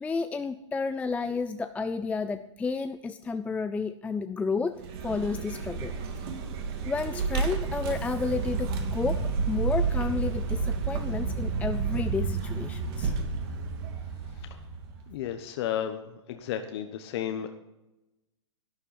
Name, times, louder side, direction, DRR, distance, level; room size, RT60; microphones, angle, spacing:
voice 1, 0.0-5.9 6.9-13.1, left 4 dB, 10° left, 10 dB, 0.4 m, -31 dB
Vehicle, 4.8-15.1, right 5 dB, 50° right, 2.6 m, -30 dB
voice 2, 15.1-16.0 16.3-17.5, left 10 dB, 55° left, 7 dB, 1.1 m, -32 dB
12.0 x 9.9 x 5.8 m, 0.96 s
hypercardioid pair, 125°, 16 cm